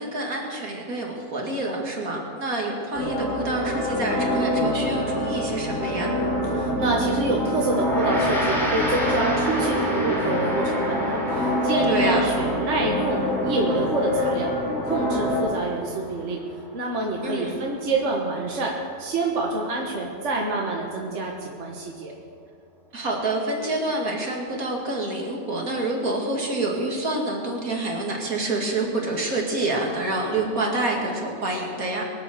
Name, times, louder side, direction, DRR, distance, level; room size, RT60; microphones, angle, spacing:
voice 1, 0.0-6.1 11.9-12.3 17.2-17.6 22.9-32.0, right 2 dB, 70° right, -1 dB, 2.8 m, -27 dB
sound 1, 2.9-15.4, left 1 dB, 60° left, 4.1 m, -25 dB
voice 2, 6.5-14.5 14.8-16.4 16.7-22.1, right 2 dB, 55° right, -1 dB, 1.7 m, -27 dB
Gong, 7.8-17.4, equal, ahead, 3.5 m, -32 dB
23.0 x 8.7 x 6.6 m, 2.2 s
omnidirectional pair, 1.6 m